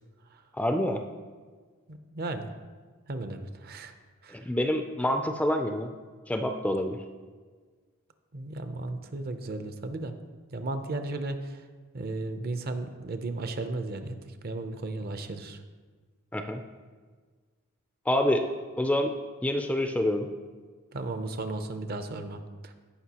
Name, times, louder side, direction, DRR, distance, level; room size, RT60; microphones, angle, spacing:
voice 1, 0.6-1.0 4.3-5.9 6.3-7.0 16.3-16.6 18.1-18.4 18.8-19.1 19.4-20.3, left 1 dB, 5° left, 5 dB, 0.4 m, -27 dB
voice 2, 1.9-2.5 3.1-3.9 4.2-4.4 8.3-10.1 10.5-11.6 11.9-14.2 14.4-15.6 20.9-22.7, right 2 dB, 45° right, 8 dB, 0.6 m, -35 dB
15.5 x 5.3 x 2.9 m, 1.5 s
head